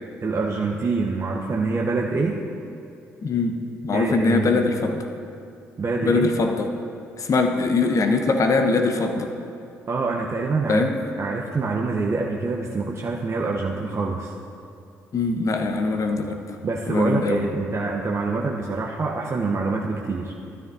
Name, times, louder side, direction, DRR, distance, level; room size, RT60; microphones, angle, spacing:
voice 1, 0.2-2.4 3.9-4.7 5.8-6.3 9.9-10.9 11.2-14.3 16.6-20.3, right 3 dB, 40° right, -1 dB, 0.9 m, -25 dB
voice 2, 3.2-3.6 3.8-5.1 6.0-6.7 7.2-9.3 10.7-11.0 15.1-16.4 16.9-17.5, left 3 dB, 45° left, 5 dB, 1.1 m, -22 dB
15.0 x 13.0 x 2.8 m, 2.6 s
hypercardioid pair, 45°, 7 cm